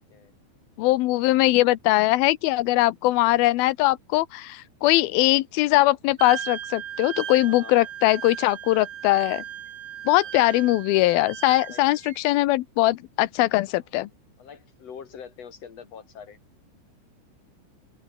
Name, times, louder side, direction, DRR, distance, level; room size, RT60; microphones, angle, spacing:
voice 1, 0.8-9.4 10.1-14.1, left 17 dB, 90° left, 2.2 m, -21 dB
Wind instrument woodwind instrument, 6.2-12.2, right 10 dB, 65° right, 1.8 m, -37 dB
voice 2, 7.4-7.9 10.2-10.5 11.7-11.8 13.7-13.8 14.4-16.4, left 7 dB, 40° left, 3.7 m, -44 dB
open air
omnidirectional pair, 5.3 m